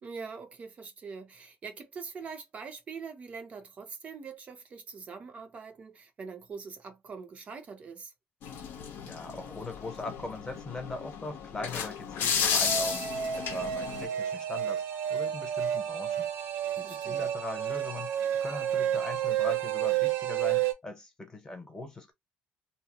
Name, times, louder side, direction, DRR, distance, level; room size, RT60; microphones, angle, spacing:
voice 1, 0.0-8.1 16.8-17.3, right 5 dB, 40° right, 0.5 m, -43 dB
sound 1, 8.4-14.1, left 6 dB, 70° left, 0.7 m, -33 dB
voice 2, 9.1-14.8 15.1-16.3 16.8-18.1 18.4-22.1, left 2 dB, 20° left, 0.8 m, -40 dB
sound 2, 12.6-20.7, right 10 dB, 85° right, 0.6 m, -30 dB
2.8 x 2.0 x 2.8 m
cardioid pair, 125°, 4 cm